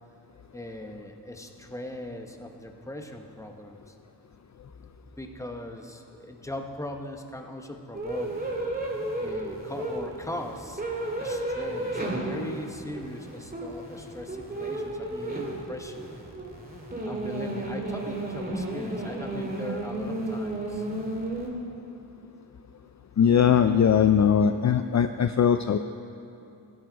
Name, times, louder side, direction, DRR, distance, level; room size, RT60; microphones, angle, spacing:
voice 1, 0.5-3.9 5.2-8.3 9.2-10.8 11.2-16.1 17.1-20.9, left 1 dB, 5° left, 4 dB, 1.0 m, -39 dB
sound 1, 7.9-21.5, right 1 dB, 20° right, 2.1 m, -33 dB
voice 2, 23.2-25.8, left 8 dB, 40° left, 9 dB, 0.4 m, -20 dB
16.5 x 11.0 x 3.9 m, 2.7 s
wide cardioid pair, 80°, 44 cm